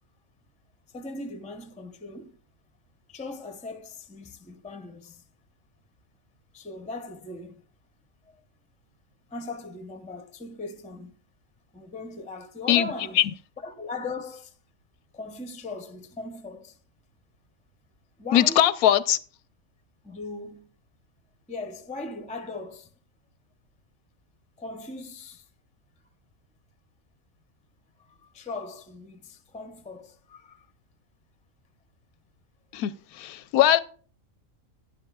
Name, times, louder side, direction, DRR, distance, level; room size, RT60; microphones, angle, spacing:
voice 1, 0.9-2.4 3.1-5.2 6.5-7.7 8.3-8.4 9.3-11.1 11.7-13.2 13.6-14.5 15.1-16.8 18.2-18.7 20.0-20.7 21.5-22.9 24.6-25.4 28.1-30.7, left 2 dB, 10° left, 0.3 m, -38 dB
voice 2, 18.3-19.2 32.7-32.9 33.2-33.8, left 12 dB, 90° left, 1.1 m, -20 dB
11.5 x 9.9 x 2.3 m
omnidirectional pair, 1.5 m